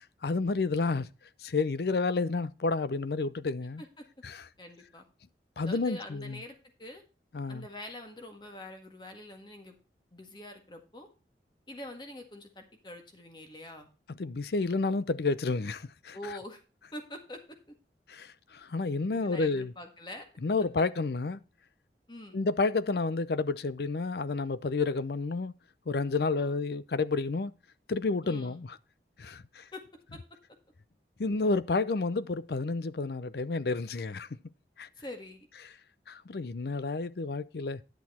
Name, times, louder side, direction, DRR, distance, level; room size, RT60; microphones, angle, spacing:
voice 1, 0.2-1.1 1.4-3.8 4.2-4.4 5.6-6.4 7.3-7.7 14.2-16.2 18.1-19.7 20.4-21.4 22.3-25.5 25.9-27.5 27.9-28.8 29.2-29.7 31.2-34.3 34.8-34.9 36.1-37.8, left 3 dB, 65° left, 0.5 m, -30 dB
voice 2, 4.6-5.1 5.6-7.0 7.5-9.7 10.1-11.1 11.7-13.9 16.1-16.6 16.9-17.4 19.1-20.3 22.1-22.4 26.2-26.6 28.2-28.6 29.7-29.8 30.1-30.2 35.0-35.5, left 1 dB, 25° left, 1.7 m, -45 dB
10.5 x 6.3 x 4.2 m
head